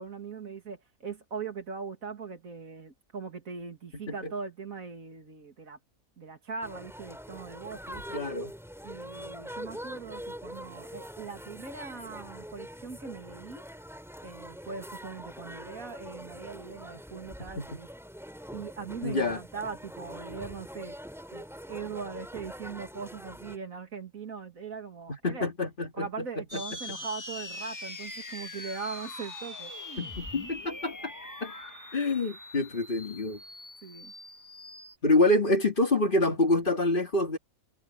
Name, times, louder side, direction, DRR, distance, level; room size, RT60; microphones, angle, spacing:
voice 1, 0.0-5.8 6.2-8.2 8.8-13.6 14.2-17.9 18.5-21.0 21.3-25.4 25.9-29.7 33.8-34.1, right 5 dB, 75° right, 2.7 m, -40 dB
sound 1, 6.6-23.6, equal, ahead, 3.7 m, -44 dB
voice 2, 8.1-8.5 17.6-17.8 19.0-19.4 25.1-26.6 26.9-27.0 30.0-31.1 31.4-31.5 31.9-33.4 35.0-37.4, left 2 dB, 35° left, 2.2 m, -27 dB
sound 2, 26.5-35.0, left 2 dB, 15° left, 1.2 m, -42 dB
omnidirectional pair, 1.5 m